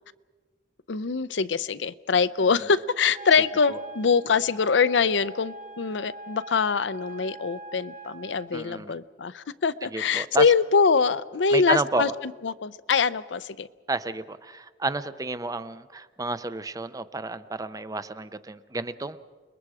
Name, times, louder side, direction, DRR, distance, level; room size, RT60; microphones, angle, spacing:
voice 1, 0.9-12.1 12.4-13.7, left 5 dB, 75° left, 0.6 m, -24 dB
Wind instrument woodwind instrument, 3.1-8.5, right 2 dB, 45° right, 1.7 m, -43 dB
voice 2, 8.5-8.9 9.8-10.4 11.5-12.1 13.9-19.2, right 3 dB, 20° right, 0.6 m, -31 dB
29.5 x 21.0 x 4.9 m
head